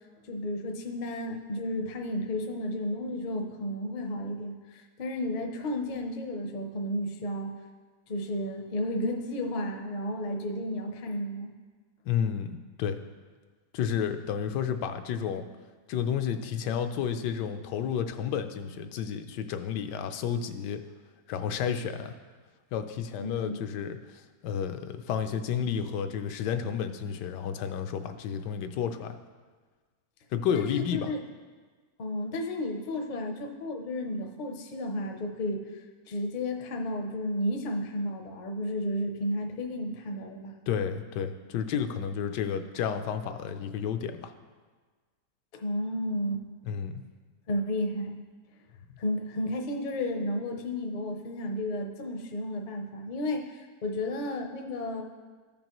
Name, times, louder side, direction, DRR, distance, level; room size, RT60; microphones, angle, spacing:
voice 1, 0.3-7.5 8.1-11.5 23.2-23.6 30.5-31.2 32.0-40.5 45.5-46.4 47.5-48.2 49.0-55.0, left 1 dB, 55° left, 3 dB, 0.5 m, -32 dB
voice 2, 12.1-12.5 12.8-13.0 13.7-15.4 15.9-20.8 21.3-22.1 22.7-24.0 24.4-29.2 30.3-31.1 40.7-44.3 46.7-47.0, left 8 dB, 85° left, 8 dB, 1.2 m, -31 dB
13.5 x 5.3 x 3.0 m, 1.4 s
omnidirectional pair, 1.8 m